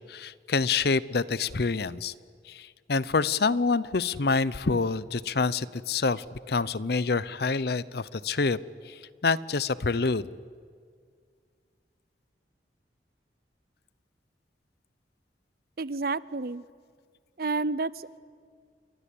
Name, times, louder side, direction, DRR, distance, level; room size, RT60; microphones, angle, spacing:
voice 1, 0.1-2.1 2.5-8.6 8.8-10.3, left 4 dB, 60° left, 19 dB, 0.7 m, -27 dB
voice 2, 15.8-16.6 17.4-18.2, right 3 dB, 55° right, 19 dB, 0.7 m, -30 dB
29.5 x 22.5 x 8.5 m, 2.1 s
head